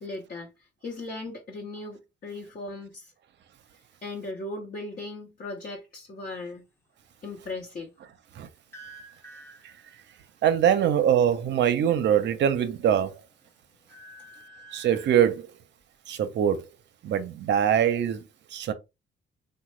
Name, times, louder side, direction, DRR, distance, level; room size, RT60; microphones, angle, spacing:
voice 1, 0.0-3.1 4.0-6.6 7.2-7.9, left 2 dB, 45° left, 0.8 m, -38 dB
sound 1, 8.7-10.2 12.2-12.9 13.3-15.1, right 2 dB, 10° left, 0.7 m, -49 dB
voice 2, 10.4-13.1 14.7-15.5 16.1-16.7 17.0-18.2 18.5-18.7, right 9 dB, 65° right, 0.6 m, -23 dB
3.0 x 2.1 x 3.0 m
cardioid pair, 90°, 20 cm